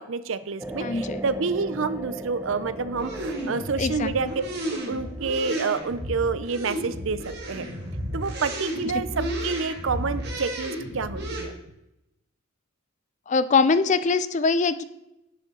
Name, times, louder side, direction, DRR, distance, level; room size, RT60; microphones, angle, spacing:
voice 1, 0.0-4.3 4.7-7.7 8.1-9.1 9.4-11.5, right 4 dB, 65° right, 14 dB, 0.5 m, -28 dB
sound 1, 0.6-9.4 9.9-10.0, right 1 dB, 10° right, 0.6 m, -40 dB
voice 2, 0.8-1.2 3.8-4.1 13.3-14.8, left 4 dB, 35° left, 14 dB, 0.4 m, -22 dB
sound 2, 2.9-11.4, equal, 50° right, 2.1 m, -33 dB
11.0 x 6.8 x 3.8 m, 0.88 s
head